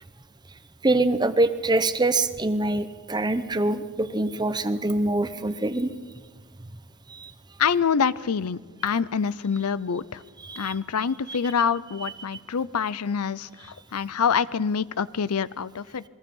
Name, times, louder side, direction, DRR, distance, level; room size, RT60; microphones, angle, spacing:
voice 1, 0.8-5.9 7.1-7.3 10.4-10.8 11.3-11.4 12.0-12.1, right 2 dB, 20° right, 11 dB, 0.9 m, -24 dB
voice 2, 7.6-10.2 10.6-13.5 13.9-16.0, left 6 dB, 80° left, 18 dB, 0.6 m, -26 dB
27.5 x 21.0 x 5.5 m, 1.4 s
head